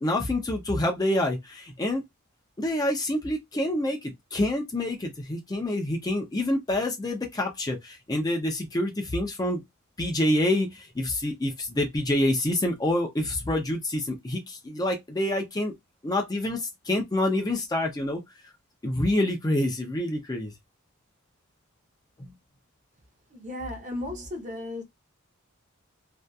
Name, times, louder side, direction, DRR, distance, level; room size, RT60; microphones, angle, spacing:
voice 1, 0.0-2.0 2.6-9.6 10.0-15.7 16.0-18.2 18.8-20.5 22.2-22.3, left 1 dB, 20° left, 0.4 m, -27 dB
voice 2, 23.3-24.8, left 1 dB, 35° right, 0.7 m, -35 dB
2.6 x 2.3 x 2.2 m
head